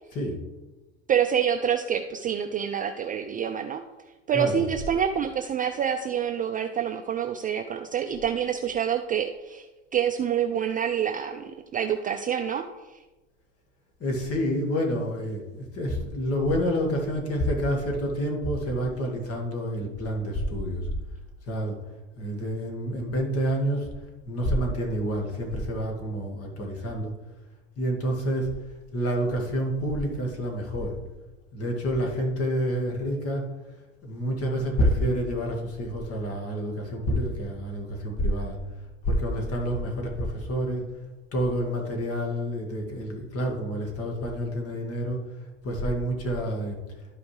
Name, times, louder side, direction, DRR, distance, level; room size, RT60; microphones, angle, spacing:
voice 1, 1.1-3.8 4.3-9.7 9.9-12.6, right 8 dB, 25° right, 6 dB, 0.4 m, -27 dB
voice 2, 4.3-4.6 14.0-20.9 21.5-21.8 22.2-23.9 24.3-27.1 27.8-28.5 28.9-30.9 31.5-33.5 34.0-38.6 39.0-40.9 41.3-45.2 45.6-46.8, equal, 40° left, 1 dB, 2.0 m, -28 dB
12.5 x 5.1 x 3.2 m, 1.2 s
hypercardioid pair, 85°, 37 cm